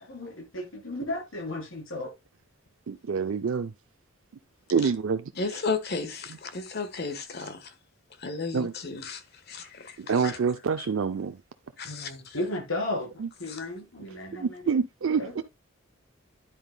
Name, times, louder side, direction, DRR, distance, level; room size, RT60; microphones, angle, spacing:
voice 1, 0.1-2.1 11.8-14.6 15.2-15.4, left 1 dB, 85° left, 3.9 m, -34 dB
voice 2, 2.9-3.7 4.7-5.6 6.3-6.4 8.5-8.7 10.0-11.4 13.2-13.3 14.3-15.4, right 5 dB, 80° right, 0.5 m, -27 dB
voice 3, 5.4-7.7 8.2-9.2 9.5-10.0 10.2-10.3 11.8-12.1 13.5-13.6, left 4 dB, 55° left, 1.3 m, -33 dB
10.0 x 9.0 x 2.2 m
head